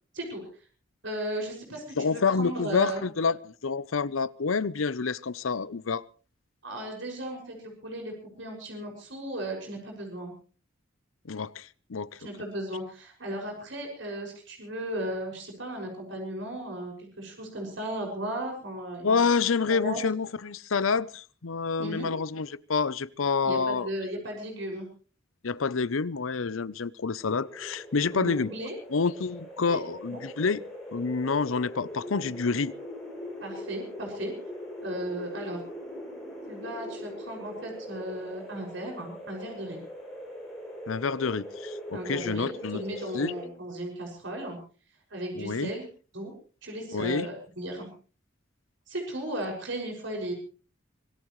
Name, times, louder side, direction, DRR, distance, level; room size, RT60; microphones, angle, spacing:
voice 1, 0.1-0.5 1.0-3.0 6.6-10.3 12.2-19.2 19.7-20.0 21.8-22.1 23.4-24.9 28.1-28.8 29.6-29.8 30.1-30.2 33.4-34.3 34.8-35.6 36.5-39.8 41.9-44.6 45.1-45.9 46.1-46.3 46.6-47.9 48.9-50.3, right 1 dB, 70° right, 6.3 m, -36 dB
voice 2, 2.0-6.0 11.2-12.1 19.0-23.9 25.4-28.5 28.9-30.6 30.9-32.7 40.9-42.8 43.1-43.3 45.4-45.7 46.9-47.3, left 5 dB, 85° left, 0.7 m, -28 dB
sound 1, 27.2-43.4, equal, ahead, 6.9 m, -41 dB
25.0 x 17.5 x 3.2 m
head